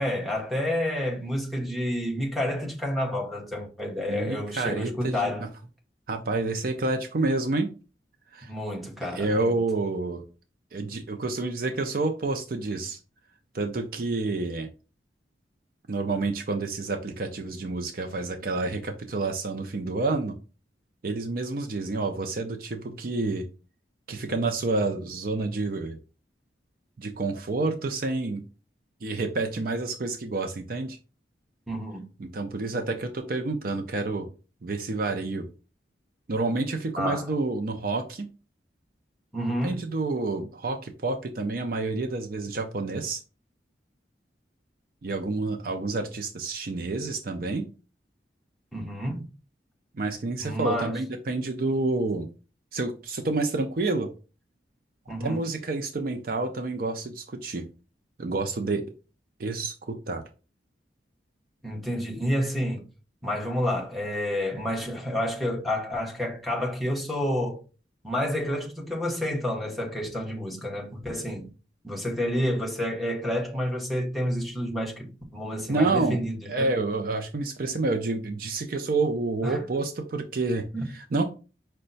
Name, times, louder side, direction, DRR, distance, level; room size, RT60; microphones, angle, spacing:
voice 1, 0.0-5.5 8.4-9.6 31.7-32.0 37.0-37.3 39.3-39.8 48.7-49.3 50.4-51.0 55.1-55.4 61.6-62.8 63.2-67.6 68.0-71.5 71.8-76.7 79.4-79.6 80.7-80.8, left 1 dB, ahead, 1.0 m, -29 dB
voice 2, 4.1-5.3 6.1-7.7 8.3-8.5 9.0-10.2 10.7-13.0 13.5-14.7 15.9-20.4 21.0-23.5 24.1-26.0 27.0-28.4 29.0-31.0 32.2-34.3 34.6-35.5 36.3-38.3 39.6-43.2 45.0-47.7 49.9-52.3 52.7-54.1 55.2-57.6 58.2-58.9 59.4-60.2 75.7-76.2 76.5-80.6 80.9-81.3, right 3 dB, 50° right, 0.5 m, -29 dB
5.3 x 2.2 x 3.9 m
head